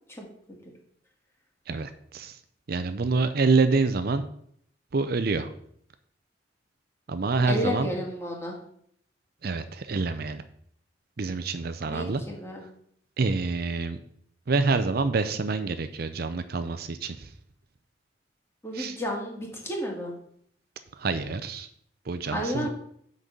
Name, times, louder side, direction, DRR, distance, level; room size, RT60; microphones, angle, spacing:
voice 1, 1.7-2.3 2.7-4.2 4.9-5.5 7.1-7.9 9.4-10.4 11.2-12.2 13.2-14.0 14.5-17.3 18.7-19.0 21.0-21.7 22.1-22.7, right 4 dB, 60° right, 10 dB, 0.6 m, -27 dB
voice 2, 7.5-8.5 11.8-12.6 18.6-20.1 22.3-22.7, equal, 15° left, -1 dB, 2.1 m, -31 dB
6.2 x 5.4 x 6.6 m, 0.66 s
head